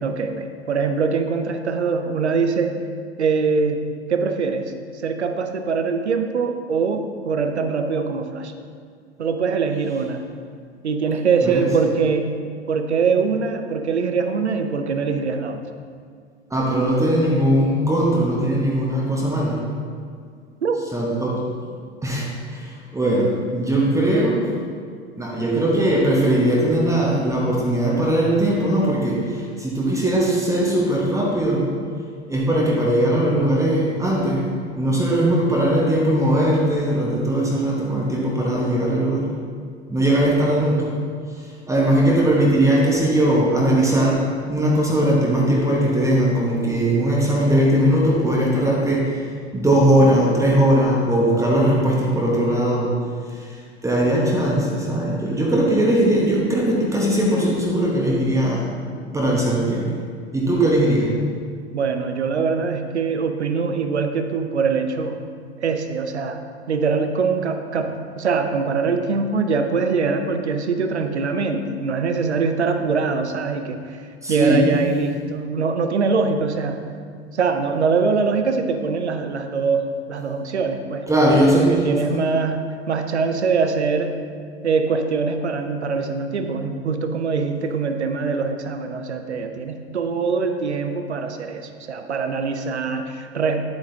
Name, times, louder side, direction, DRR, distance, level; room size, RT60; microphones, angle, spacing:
voice 1, 0.0-2.8 3.2-8.5 9.2-10.3 10.8-12.3 12.7-15.6 20.6-20.8 61.7-65.3 65.6-66.4 66.7-74.0 74.3-76.8 77.3-81.1 81.5-84.2 84.6-93.7, right 5 dB, 85° right, 7 dB, 0.7 m, -23 dB
voice 2, 16.5-19.6 20.9-21.6 22.0-24.5 25.2-31.7 32.3-39.3 39.9-40.9 41.7-49.3 49.5-52.9 53.3-53.6 53.8-58.7 58.9-59.9 60.3-61.1 74.2-74.7 81.1-81.7 82.1-82.2, right 1 dB, 10° right, -3 dB, 1.3 m, -19 dB
10.5 x 7.9 x 2.8 m, 2.1 s
figure-of-eight pair, 90°, 33 cm